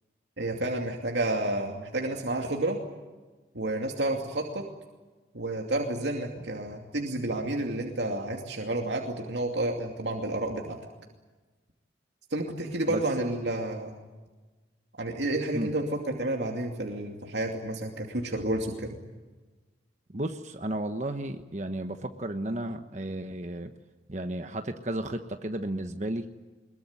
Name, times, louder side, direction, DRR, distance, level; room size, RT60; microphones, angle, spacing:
voice 1, 0.4-2.8 3.5-4.6 5.3-10.8 12.3-14.0 15.0-18.9, right 1 dB, 85° right, 1 dB, 2.6 m, -30 dB
voice 2, 20.1-23.7 24.1-26.3, right 1 dB, 40° right, 6 dB, 1.2 m, -33 dB
23.0 x 22.0 x 9.6 m, 1.3 s
head